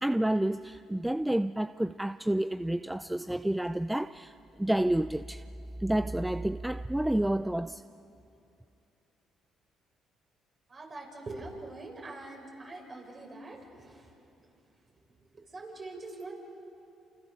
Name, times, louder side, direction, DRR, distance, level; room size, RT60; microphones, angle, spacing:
voice 1, 0.0-5.4 5.8-7.8, right 1 dB, 5° right, 0.5 m, -29 dB
voice 2, 10.7-14.1 15.5-16.3, right 2 dB, 40° right, 7.2 m, -43 dB
29.0 x 28.0 x 6.9 m
supercardioid pair, 70°, 0 cm